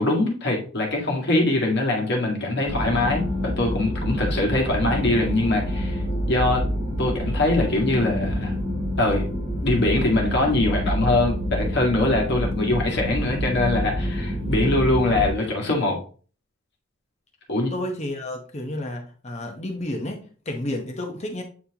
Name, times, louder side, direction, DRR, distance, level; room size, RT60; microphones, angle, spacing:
voice 1, 0.0-6.0 6.3-6.6 7.0-8.5 9.0-9.2 9.6-16.0 17.5-17.7, left 2 dB, 55° left, 1.8 m, -23 dB
sound 1, 2.7-15.3, equal, 60° right, 3.6 m, -27 dB
voice 2, 17.7-21.4, left 1 dB, 30° left, 1.0 m, -31 dB
8.6 x 4.3 x 2.9 m
head